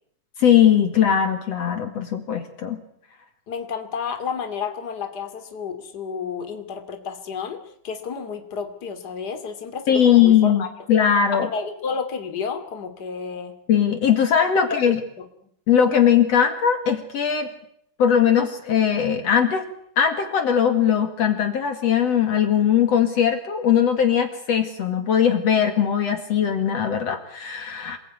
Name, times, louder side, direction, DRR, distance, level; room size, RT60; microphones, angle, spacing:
voice 1, 0.4-2.8 9.9-10.6 10.9-11.5 13.7-15.0 15.7-17.5 18.0-19.7 20.0-28.0, left 8 dB, 60° left, 6 dB, 3.1 m, -19 dB
voice 2, 3.5-7.6 7.8-10.7 11.3-13.5 14.5-15.3, left 6 dB, 35° left, 6 dB, 2.9 m, -31 dB
28.0 x 21.0 x 9.6 m, 0.70 s
omnidirectional pair, 3.5 m